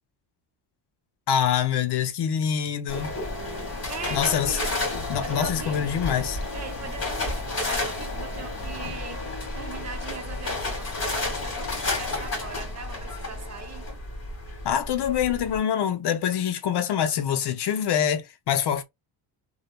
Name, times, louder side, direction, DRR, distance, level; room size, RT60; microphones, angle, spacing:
voice 1, 1.3-3.1 4.1-4.6 5.1-6.4 14.6-18.8, left 9 dB, 60° left, 0.7 m, -25 dB
sound 1, 2.9-15.6, left 2 dB, 35° left, 1.8 m, -31 dB
voice 2, 3.9-4.8 5.2-5.8 6.5-9.2 9.5-13.9, right 6 dB, 35° right, 0.6 m, -40 dB
3.1 x 2.2 x 2.2 m
cardioid pair, 115°, 45 cm